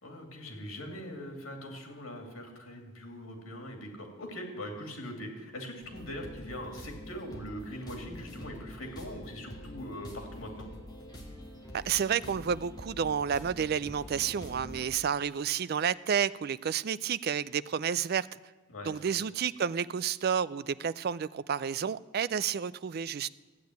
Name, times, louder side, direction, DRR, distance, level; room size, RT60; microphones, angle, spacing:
voice 1, 0.0-10.7 18.7-18.9, equal, 75° left, 2.9 m, -42 dB
sound 1, 5.8-14.8, equal, 20° left, 2.2 m, -46 dB
voice 2, 11.7-18.3 18.8-23.3, right 7 dB, 50° right, 0.4 m, -30 dB
14.5 x 8.6 x 9.3 m
head